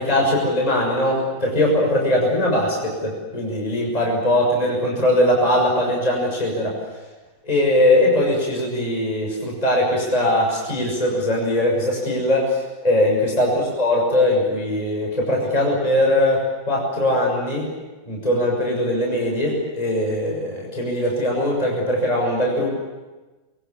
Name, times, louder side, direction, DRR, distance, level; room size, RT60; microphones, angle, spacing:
voice 1, 0.0-6.7 7.4-17.7 18.0-22.7, left 1 dB, 10° left, -1 dB, 6.4 m, -20 dB
28.0 x 23.0 x 7.2 m, 1.2 s
omnidirectional pair, 4.5 m